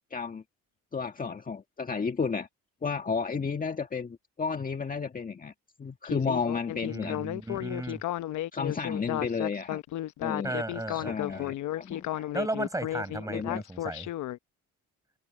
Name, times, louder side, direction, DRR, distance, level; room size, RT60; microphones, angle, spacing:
voice 1, 0.1-0.4 0.9-2.5 2.8-5.5 5.8-7.2 8.5-9.8 10.2-10.6 10.9-12.3 13.2-13.6, left 5 dB, 25° left, 1.7 m, -32 dB
Speech synthesizer, 6.0-14.4, left 14 dB, 65° left, 0.9 m, -33 dB
voice 2, 6.9-8.0 10.4-11.5 12.3-14.1, right 2 dB, 10° right, 5.7 m, -35 dB
cardioid pair, 100°, 32 cm